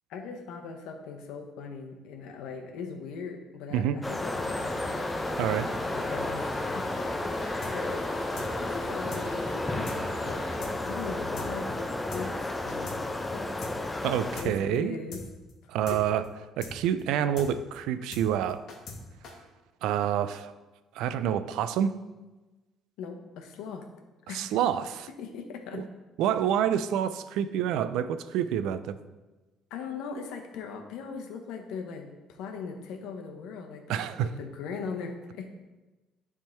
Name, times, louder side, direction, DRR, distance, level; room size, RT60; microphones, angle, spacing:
voice 1, 0.1-5.1 5.8-6.8 7.2-8.1 8.6-10.5 10.8-12.9 13.2-14.0 14.4-15.2 15.9-16.0 23.0-23.8 24.3-24.6 25.2-25.8 29.7-35.5, left 5 dB, 85° left, 4 dB, 1.0 m, -40 dB
voice 2, 3.7-4.0 5.4-5.7 14.0-15.0 15.7-16.2 16.6-18.6 19.8-20.5 21.0-21.9 24.3-25.1 25.7-25.8 26.2-29.0 33.9-34.3, right 9 dB, 80° right, 12 dB, 0.4 m, -27 dB
sound 1, 4.0-14.4, left 2 dB, 10° left, 0.6 m, -32 dB
sound 2, 4.4-10.6, left 1 dB, 30° left, 2.3 m, -46 dB
sound 3, 7.6-7.7 8.0-8.1 8.4-8.5 8.7-8.8 9.1-9.2 9.5-9.6 9.9-10.0 10.2-10.3 10.6-10.7 11.0-11.1 11.4-11.5 11.7-11.8 12.1-12.2 12.5-13.0 13.2-13.3 13.6-13.7 14.0-14.1 14.4-14.5 14.7-14.8 15.1-15.2 15.5-15.6 15.9-16.3 16.6-16.7 17.0-17.1 17.4-17.5 17.7-17.8 18.1-18.2 18.5-19.0 19.2-19.3, left 4 dB, 55° left, 1.4 m, -41 dB
10.0 x 3.7 x 4.4 m, 1.2 s
cardioid pair, 145°, 0 cm